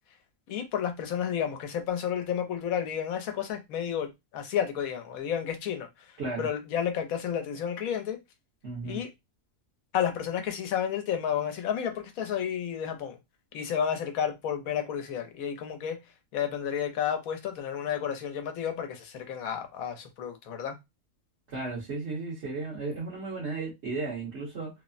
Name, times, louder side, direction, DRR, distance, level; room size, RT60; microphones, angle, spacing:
voice 1, 0.5-8.2 8.8-9.1 9.9-13.2 13.5-16.0 16.3-20.8, left 8 dB, 90° left, 1.1 m, -31 dB
voice 2, 8.6-9.0 21.5-24.7, right 3 dB, 55° right, 1.3 m, -34 dB
3.2 x 2.0 x 2.4 m
omnidirectional pair, 1.4 m